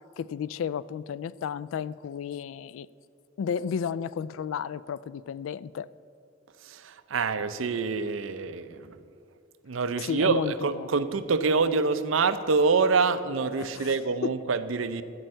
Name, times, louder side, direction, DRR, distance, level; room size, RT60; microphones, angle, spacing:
voice 1, 0.2-2.9 3.4-5.9 10.0-10.9 13.6-14.3, left 7 dB, 85° left, 19 dB, 0.3 m, -33 dB
voice 2, 6.7-9.0 9.7-15.0, right 4 dB, 80° right, 12 dB, 0.5 m, -26 dB
13.5 x 4.6 x 7.7 m, 2.5 s
head